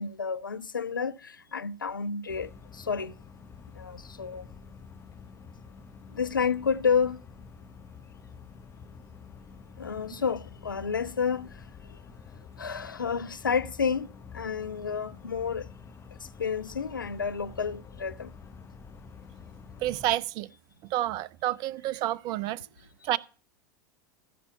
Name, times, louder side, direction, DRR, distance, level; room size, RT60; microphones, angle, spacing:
voice 1, 0.0-3.1 3.8-4.5 6.2-7.2 9.8-11.5 12.6-14.1 14.3-15.7 16.4-18.3, left 6 dB, 85° left, 0.5 m, -30 dB
sound 1, 2.3-20.2, left 6 dB, 25° left, 1.1 m, -48 dB
voice 2, 19.8-20.5 20.9-22.6 23.0-23.2, right 14 dB, 45° right, 0.5 m, -29 dB
15.5 x 5.4 x 4.3 m
figure-of-eight pair, 80°, 11 cm